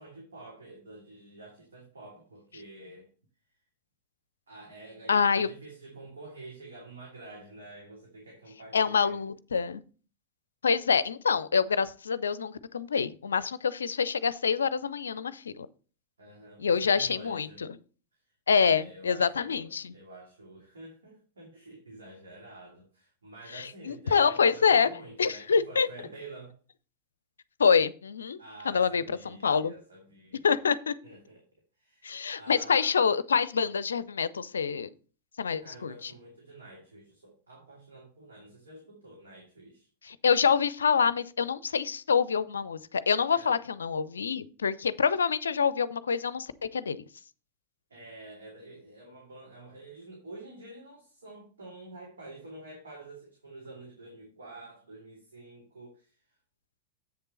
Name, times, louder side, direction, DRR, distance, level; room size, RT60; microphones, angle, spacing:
voice 1, 0.0-3.1 4.5-9.2 16.2-17.7 18.5-26.6 28.4-30.7 31.0-31.4 31.8-32.1 32.4-33.0 35.6-39.9 43.3-43.6 47.9-56.2, right 2 dB, 70° right, -2 dB, 2.7 m, -48 dB
voice 2, 5.1-5.5 8.7-9.8 10.6-15.7 16.6-17.5 18.5-19.8 23.6-24.9 25.2-25.9 27.6-28.4 28.7-29.0 29.4-29.7 30.4-31.0 32.0-34.9 35.4-35.9 40.1-47.0, left 6 dB, 70° left, 18 dB, 0.5 m, -26 dB
8.0 x 6.6 x 4.2 m, 0.38 s
figure-of-eight pair, 90°, 0 cm